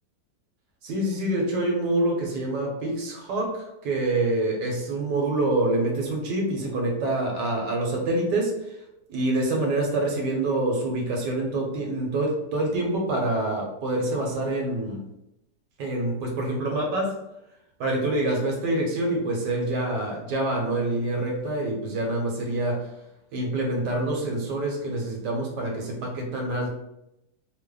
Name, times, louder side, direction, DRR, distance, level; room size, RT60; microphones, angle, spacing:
voice 1, 0.8-8.8 9.1-15.0 15.8-17.1 17.8-22.9 23.3-26.7, right 2 dB, 70° right, -1 dB, 1.4 m, -26 dB
3.2 x 2.1 x 3.7 m, 0.86 s
omnidirectional pair, 2.0 m